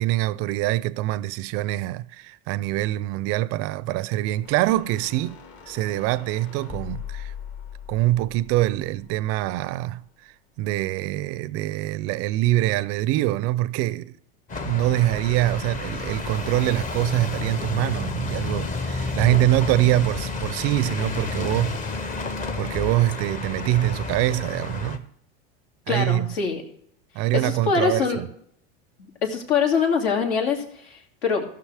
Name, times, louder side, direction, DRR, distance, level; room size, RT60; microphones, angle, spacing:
voice 1, 0.0-5.4 5.7-7.3 7.9-14.2 14.6-21.8 22.6-25.0 25.9-26.3 27.1-28.3, right 16 dB, 45° right, 0.4 m, -24 dB
sound 1, 4.4-9.6, left 9 dB, 40° left, 1.8 m, -41 dB
sound 2, 14.5-25.0, left 3 dB, 25° left, 0.9 m, -30 dB
voice 2, 25.9-26.6 27.3-28.2 29.0-31.4, left 5 dB, 75° left, 2.7 m, -24 dB
15.5 x 6.1 x 4.8 m
supercardioid pair, 130°, 33 cm